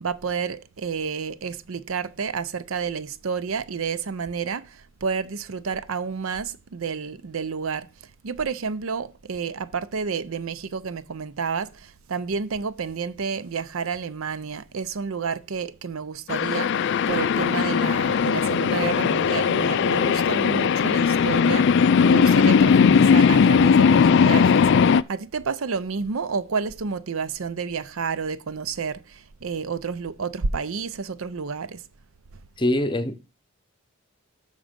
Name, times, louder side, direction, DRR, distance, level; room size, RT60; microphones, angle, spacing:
voice 1, 0.0-7.9 8.2-31.8, right 5 dB, 70° right, 0.6 m, -30 dB
sound 1, 16.3-25.0, left 6 dB, 50° left, 0.3 m, -18 dB
voice 2, 32.6-33.2, left 1 dB, 20° left, 0.7 m, -23 dB
6.5 x 6.1 x 5.1 m
head